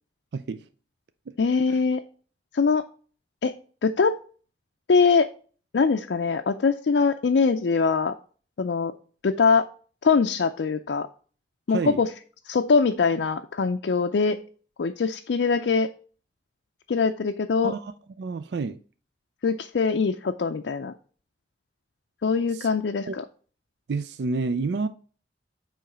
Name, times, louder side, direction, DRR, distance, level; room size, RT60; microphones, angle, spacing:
voice 1, 0.3-0.7 1.3-1.4 1.7-1.8 11.7-12.0 17.6-17.9 18.2-18.8 22.5-22.7 23.1-23.2 23.9-24.9, right 4 dB, 65° right, 0.4 m, -29 dB
voice 2, 1.4-2.0 2.5-2.8 3.4-3.5 3.8-4.2 4.9-5.3 5.7-8.1 8.6-8.9 9.2-9.7 10.0-11.1 11.7-12.1 12.5-14.4 14.8-15.9 16.9-17.7 19.4-20.9 22.2-23.2, left 5 dB, 70° left, 0.4 m, -22 dB
8.7 x 3.1 x 5.6 m
head